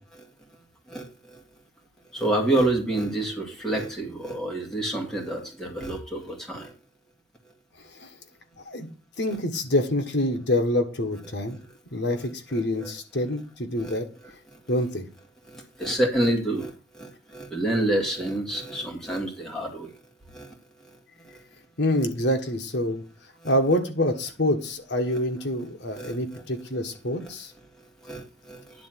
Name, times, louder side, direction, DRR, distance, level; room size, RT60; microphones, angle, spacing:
voice 1, 2.1-6.7 13.8-14.0 15.5-16.7 17.0-19.9 20.3-20.5 25.9-26.2 28.0-28.6, right 1 dB, 5° left, 0 dB, 2.0 m, -27 dB
voice 2, 7.8-8.1 8.6-8.9 9.2-11.6 11.9-14.1 14.7-15.0 21.8-23.0 23.4-27.5, left 1 dB, 65° left, 5 dB, 1.5 m, -26 dB
10.5 x 4.0 x 7.6 m, 0.34 s
head